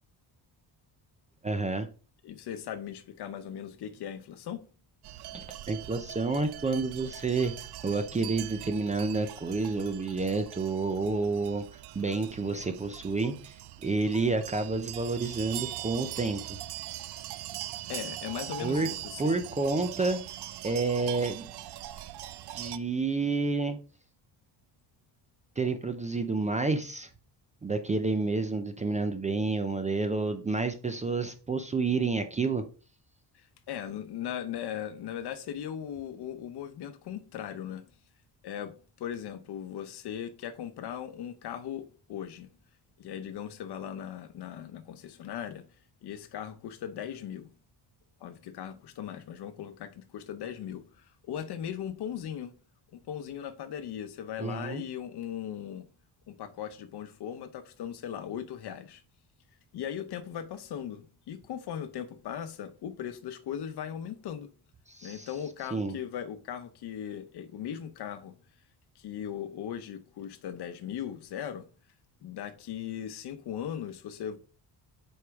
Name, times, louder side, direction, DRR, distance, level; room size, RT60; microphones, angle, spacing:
voice 1, 1.4-1.9 5.3-7.5 7.8-11.6 11.9-13.5 13.8-16.6 18.6-18.9 19.2-20.2 20.6-21.5 22.5-23.8 25.6-27.1 27.6-32.6 54.4-54.8 64.9-65.3 65.7-66.0, right 3 dB, 20° right, 0.4 m, -29 dB
voice 2, 2.2-4.6 17.9-19.3 33.3-37.8 38.4-41.8 42.1-42.5 43.0-45.7 46.0-47.5 48.2-52.5 52.9-55.8 56.3-59.0 59.7-64.5 65.0-68.3 69.0-71.7 72.2-74.4, left 9 dB, 65° left, 0.9 m, -38 dB
sound 1, 5.0-22.8, right 13 dB, 65° right, 0.5 m, -42 dB
7.8 x 4.8 x 3.5 m
cardioid pair, 180°, 42 cm